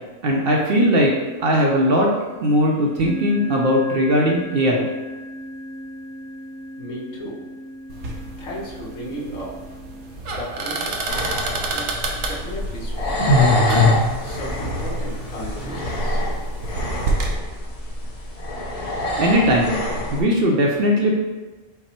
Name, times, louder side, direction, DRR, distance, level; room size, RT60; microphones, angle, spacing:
voice 1, 0.2-1.1 1.4-2.1 2.4-4.9 19.2-19.8 20.1-21.1, equal, 60° right, -1 dB, 0.7 m, -18 dB
sound 1, 1.7-2.2 3.0-10.1, left 1 dB, 10° right, 0.3 m, -36 dB
voice 2, 6.8-7.4 8.4-9.5 10.2-11.1 11.7-13.5 14.2-16.2, equal, 80° left, -4 dB, 1.5 m, -35 dB
sound 2, 7.9-17.4, right 3 dB, 80° right, 1.1 m, -30 dB
sound 3, 11.1-20.2, left 1 dB, 40° left, 0.6 m, -23 dB
5.6 x 2.0 x 4.3 m, 1.2 s
omnidirectional pair, 1.3 m